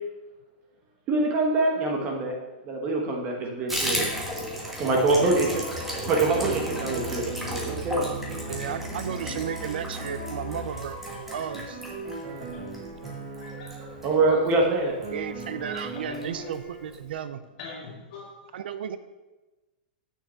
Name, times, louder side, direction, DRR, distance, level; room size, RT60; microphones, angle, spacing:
voice 1, 1.1-2.4 2.6-4.1 4.6-5.8 6.1-8.1 13.5-13.6 14.0-15.0, right 2 dB, 30° right, 1 dB, 1.3 m, -25 dB
Water tap faucet / Bathtub (filling or washing), 3.7-14.6 15.0-15.1 15.4-15.5 15.8-16.3 16.5-16.6 16.9-17.0, equal, 5° right, 1.3 m, -35 dB
sound 1, 5.3-14.6 15.0-16.9, right 2 dB, 50° right, 2.4 m, -39 dB
Musical instrument, 5.7-10.8, right 1 dB, 30° left, 1.4 m, -39 dB
voice 2, 8.5-11.8 15.1-17.4 18.5-19.0, right 9 dB, 80° right, 12 dB, 0.5 m, -34 dB
voice 3, 13.4-13.8 14.2-14.3 15.7-15.8 16.1-16.5 17.6-18.5, left 3 dB, 55° left, -3 dB, 2.5 m, -44 dB
6.6 x 6.2 x 6.8 m, 1.1 s
supercardioid pair, 160°, 5 cm